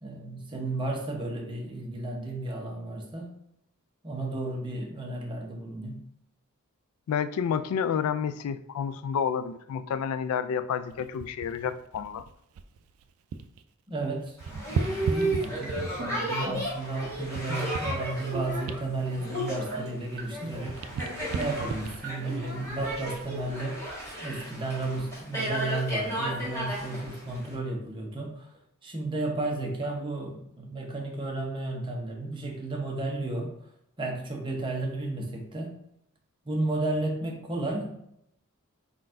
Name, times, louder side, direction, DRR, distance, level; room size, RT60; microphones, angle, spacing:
voice 1, 0.0-3.4 4.0-6.0 13.9-20.8 21.4-23.8 24.2-28.5 28.8-33.5 34.0-35.7 36.4-37.9, right 2 dB, 25° right, -1 dB, 0.9 m, -33 dB
voice 2, 7.1-12.3, left 7 dB, 80° left, 16 dB, 0.3 m, -30 dB
sound 1, 10.9-13.6 13.9-16.1 16.6-20.2 20.4-23.2 23.8-24.0, right 5 dB, 80° right, 0.3 m, -37 dB
Boat Water vehicle, 14.4-27.5, right 1 dB, 15° left, 1.4 m, -34 dB
sound 2, 15.6-16.1 16.5-16.7 17.5-18.0 18.3-18.6 19.3-19.8 20.2-20.5 21.2-21.6 22.0-22.4, right 2 dB, 50° right, 1.5 m, -36 dB
4.4 x 3.9 x 2.5 m, 0.74 s
head